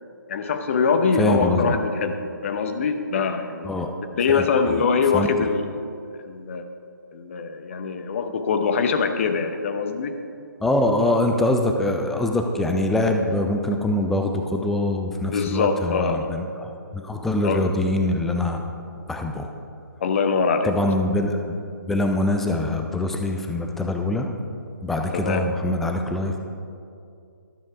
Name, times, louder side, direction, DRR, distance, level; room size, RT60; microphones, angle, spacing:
voice 1, 0.3-3.7 4.2-5.7 6.2-6.7 7.1-10.2 15.3-16.3 17.4-17.6 20.0-20.9 25.3-25.5, left 5 dB, 40° left, 8 dB, 0.8 m, -23 dB
voice 2, 1.2-1.7 3.6-3.9 4.3-4.5 5.1-5.3 10.6-18.7 19.1-19.5 20.6-21.6 21.8-24.3 24.8-26.4, left 1 dB, ahead, 3 dB, 0.4 m, -24 dB
12.0 x 7.4 x 4.9 m, 2.4 s
figure-of-eight pair, 150°, 11 cm